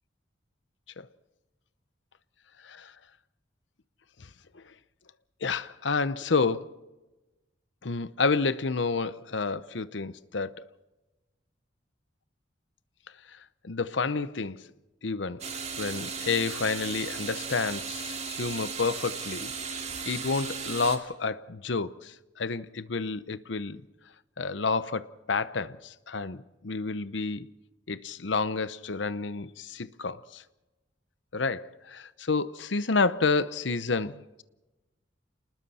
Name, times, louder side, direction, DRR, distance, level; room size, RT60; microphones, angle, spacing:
voice 1, 5.4-6.7 7.8-10.7 13.3-13.4 13.6-14.6 15.0-15.4 15.8-19.5 20.1-23.8 24.4-27.5 27.9-30.4 31.3-34.4, left 4 dB, 75° left, 0.8 m, -30 dB
sound 1, 15.4-21.0, right 5 dB, 40° right, 2.8 m, -36 dB
30.0 x 20.0 x 4.3 m
head